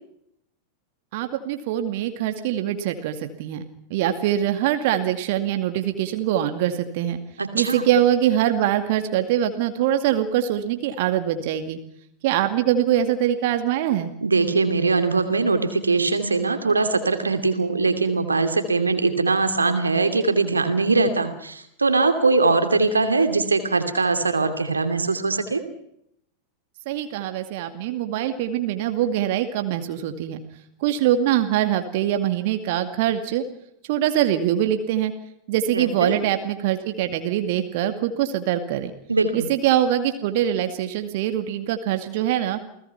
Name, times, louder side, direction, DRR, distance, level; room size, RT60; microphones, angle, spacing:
voice 1, 1.1-7.2 7.5-11.8 12.2-14.1 26.9-30.4 30.8-33.4 33.9-35.1 35.5-38.9 39.3-42.6, right 11 dB, 50° right, 7 dB, 2.3 m, -23 dB
voice 2, 7.4-7.8 14.2-25.6 35.7-36.1 39.1-39.5, right 3 dB, 80° right, 8 dB, 2.6 m, -21 dB
29.0 x 19.0 x 5.9 m, 0.75 s
figure-of-eight pair, 90°, 0 cm